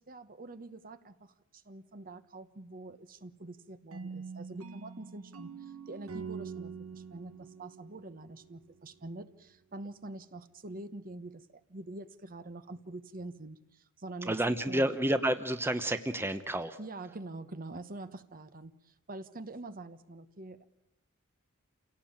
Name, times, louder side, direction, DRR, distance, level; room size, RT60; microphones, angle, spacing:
voice 1, 0.0-14.4 14.7-14.9 16.8-20.6, right 2 dB, 40° right, 12 dB, 1.2 m, -45 dB
sound 1, 3.9-8.8, right 5 dB, 80° right, 1.2 m, -44 dB
voice 2, 14.2-16.8, right 1 dB, 10° right, 9 dB, 0.9 m, -30 dB
28.5 x 17.5 x 8.8 m, 0.84 s
head